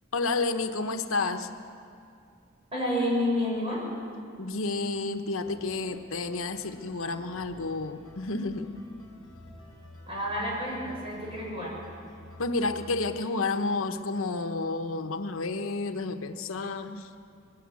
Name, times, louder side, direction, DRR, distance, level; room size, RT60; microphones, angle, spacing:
voice 1, 0.1-1.5 4.4-8.7 12.4-17.1, left 3 dB, 85° left, 7 dB, 1.0 m, -30 dB
voice 2, 2.7-3.8 10.1-11.7, left 1 dB, 25° right, -4 dB, 7.3 m, -29 dB
sound 1, 5.5-13.0, left 1 dB, 20° left, 5.4 m, -51 dB
21.0 x 17.0 x 8.5 m, 2.4 s
head